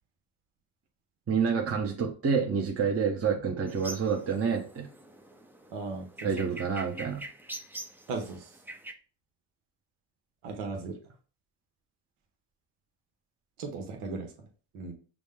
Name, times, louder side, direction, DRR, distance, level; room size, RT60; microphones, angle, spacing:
voice 1, 1.3-4.9 6.2-7.2, right 6 dB, 30° right, 2 dB, 0.8 m, -28 dB
sound 1, 3.7-8.9, right 1 dB, 5° right, 0.4 m, -45 dB
voice 2, 5.7-6.3 8.1-8.5 10.4-11.0 13.6-14.3 14.7-14.9, right 4 dB, 85° right, 3 dB, 1.0 m, -36 dB
6.0 x 2.1 x 3.5 m, 0.37 s
supercardioid pair, 65°, 49 cm